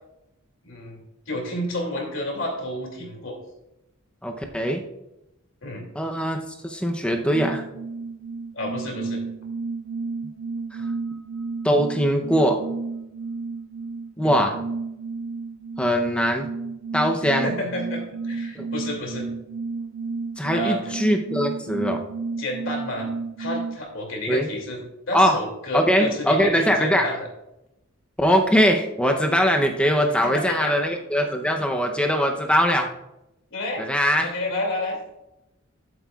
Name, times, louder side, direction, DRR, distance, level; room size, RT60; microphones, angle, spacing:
voice 1, 0.6-1.0 1.3-3.3 5.6-5.9 8.5-9.2 14.2-14.5 17.4-19.3 20.5-20.9 22.4-23.1 23.4-24.8 25.1-27.2 30.2-30.8 33.5-33.8 34.2-35.0, left 1 dB, 70° left, 1 dB, 2.6 m, -30 dB
voice 2, 4.2-4.8 5.9-7.6 11.6-12.6 14.2-14.6 15.8-16.5 16.9-17.5 18.6-18.7 20.4-22.0 24.3-24.5 25.1-25.4 25.7-27.1 28.2-32.9 33.8-34.3, equal, 5° left, 3 dB, 0.7 m, -21 dB
sound 1, 7.3-23.8, right 4 dB, 85° right, 0.6 m, -32 dB
12.5 x 7.6 x 2.4 m, 0.88 s
head